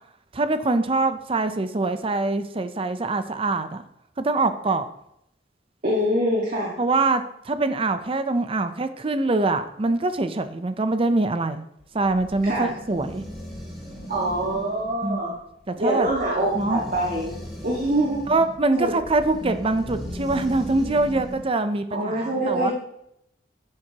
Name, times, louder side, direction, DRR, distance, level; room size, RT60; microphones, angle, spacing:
voice 1, 0.3-3.8 4.2-4.9 6.8-11.6 11.9-13.2 15.0-15.4 15.7-16.1 16.5-16.8 18.3-22.7, right 2 dB, 30° right, 10 dB, 0.6 m, -24 dB
voice 2, 5.8-6.7 12.4-12.7 14.1-15.3 15.8-17.3 17.6-18.2 18.8-18.9 21.9-22.7, right 1 dB, 50° right, -3 dB, 1.7 m, -24 dB
sound 1, 11.8-21.5, equal, ahead, 2.9 m, -37 dB
10.5 x 7.6 x 2.9 m, 0.76 s
head